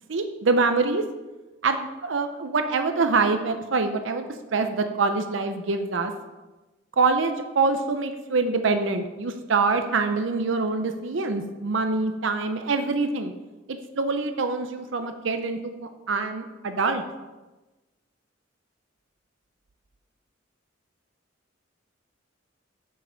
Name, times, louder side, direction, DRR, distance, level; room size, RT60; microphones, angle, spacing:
voice 1, 0.1-1.0 1.6-6.1 7.0-13.3 13.7-17.0, right 4 dB, 75° right, 8 dB, 0.6 m, -25 dB
7.7 x 5.6 x 5.1 m, 1.1 s
head